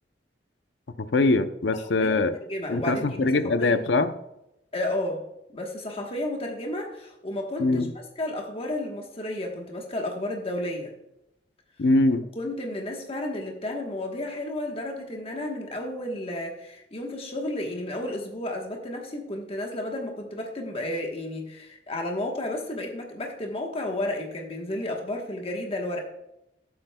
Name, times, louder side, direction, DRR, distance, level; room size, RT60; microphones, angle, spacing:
voice 1, 1.0-2.3 2.7-4.1 7.6-7.9 11.8-12.2, left 2 dB, 75° left, 10 dB, 0.6 m, -22 dB
voice 2, 1.7-3.3 3.6-3.7 4.7-5.2 5.5-7.9 8.2-10.9 12.4-26.0, left 1 dB, 35° left, 1 dB, 1.2 m, -32 dB
13.0 x 7.8 x 2.3 m, 0.87 s
head